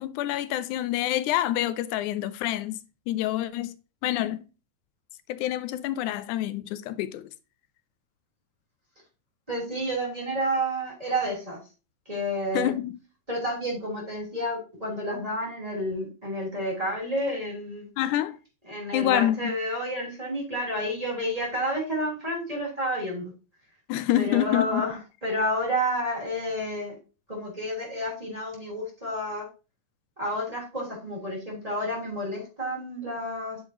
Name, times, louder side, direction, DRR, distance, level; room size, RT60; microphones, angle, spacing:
voice 1, 0.0-2.8 3.1-3.8 4.0-4.4 5.3-7.3 12.5-13.0 18.0-18.4 18.9-19.5 23.9-24.9, left 13 dB, 85° left, 2.0 m, -27 dB
voice 2, 9.5-11.6 12.1-12.7 13.3-17.9 18.6-23.3 24.2-26.9 27.3-29.5 30.2-33.6, equal, 10° right, 3.6 m, -30 dB
9.7 x 6.5 x 2.9 m
omnidirectional pair, 3.5 m